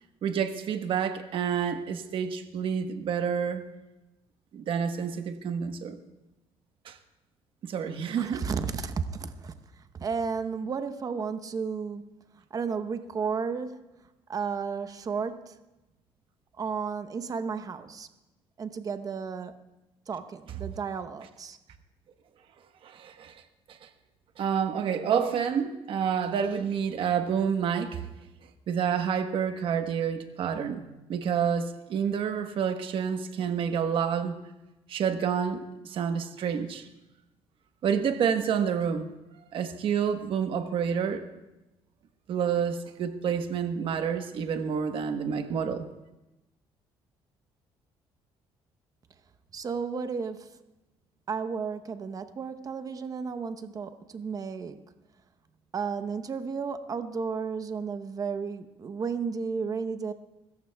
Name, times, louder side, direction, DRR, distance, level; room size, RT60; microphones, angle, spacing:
voice 1, 0.2-3.7 4.5-6.0 6.8-7.0 7.6-8.4 22.8-23.4 23.7-23.8 24.4-28.1 28.7-30.8 31.1-34.4 34.9-36.8 37.8-39.1 39.5-41.2 42.3-45.9, right 7 dB, 60° right, 7 dB, 1.2 m, -28 dB
voice 2, 8.2-12.1 12.5-13.9 14.3-15.6 16.6-18.1 18.6-19.6 20.1-21.6 49.5-50.6 51.3-54.8 55.7-60.1, right 5 dB, 35° right, 10 dB, 0.9 m, -33 dB
25.5 x 14.0 x 2.3 m, 0.98 s
cardioid pair, 110°, 10 cm